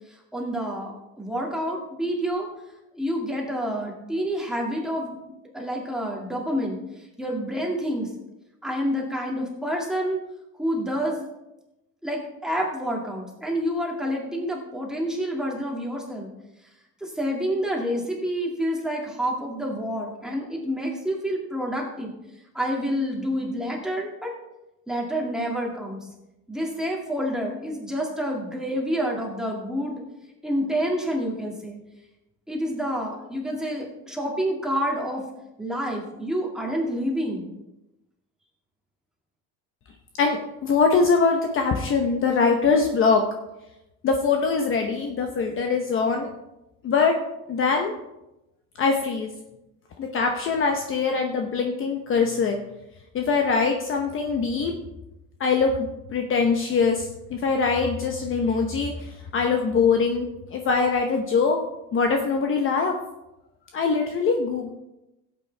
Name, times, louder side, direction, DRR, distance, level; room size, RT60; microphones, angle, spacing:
voice 1, 0.1-2.5 3.0-8.1 8.6-10.2 10.6-11.2 12.0-16.3 17.0-22.1 22.5-24.3 24.9-26.0 26.5-30.0 30.4-31.8 32.5-35.2 35.6-37.5, equal, ahead, -2 dB, 2.2 m, -28 dB
voice 2, 40.2-43.2 44.0-46.3 46.8-47.2 47.5-47.9 48.8-49.3 50.0-52.5 53.1-54.7 55.4-61.6 61.9-63.0 63.7-64.7, left 5 dB, 40° left, 3 dB, 0.9 m, -23 dB
16.5 x 8.4 x 3.4 m, 0.94 s
cardioid pair, 160°, 34 cm